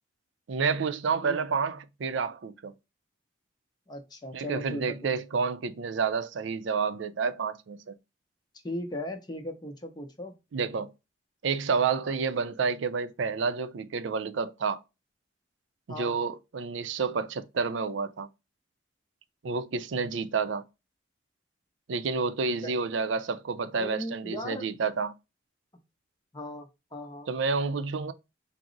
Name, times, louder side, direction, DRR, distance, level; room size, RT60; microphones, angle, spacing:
voice 1, 0.5-2.7 4.3-7.9 10.5-10.9 11.4-14.8 15.9-18.3 19.4-20.6 21.9-25.1 27.3-28.1, right 5 dB, 80° right, 0.4 m, -29 dB
voice 2, 3.9-5.2 8.6-10.3 15.9-16.2 22.6-22.7 23.8-24.7 26.3-27.3, left 1 dB, 20° left, 0.6 m, -38 dB
5.8 x 2.0 x 3.8 m
head